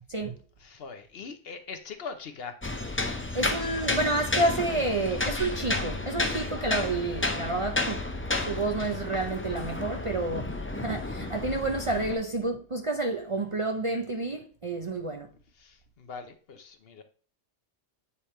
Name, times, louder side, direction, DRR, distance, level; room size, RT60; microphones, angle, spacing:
voice 1, 0.6-2.6 4.7-5.0 15.5-17.0, left 5 dB, 60° left, 0.9 m, -42 dB
sound 1, 2.6-12.1, left 2 dB, 15° left, 0.4 m, -31 dB
voice 2, 3.3-8.0 8.5-15.3, right 2 dB, 35° right, 0.5 m, -29 dB
8.4 x 3.4 x 4.3 m
omnidirectional pair, 1.2 m